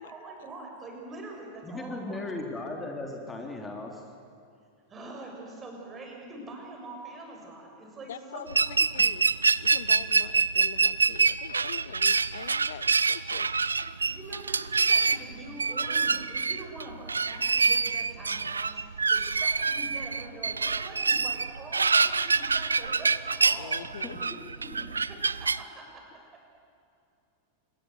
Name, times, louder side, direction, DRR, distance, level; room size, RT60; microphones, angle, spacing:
voice 1, 0.0-2.3 4.9-8.8 14.1-23.9 24.2-26.4, right 2 dB, 20° right, 1 dB, 6.8 m, -44 dB
voice 2, 1.6-4.0 24.0-24.2, left 2 dB, 15° left, 2 dB, 3.5 m, -37 dB
voice 3, 8.1-9.2 9.6-13.5 23.6-24.2, left 10 dB, 60° left, 17 dB, 0.6 m, -43 dB
sound 1, 8.5-25.6, right 4 dB, 75° right, 0.5 m, -26 dB
27.0 x 21.0 x 8.2 m, 2.5 s
figure-of-eight pair, 90°, 0 cm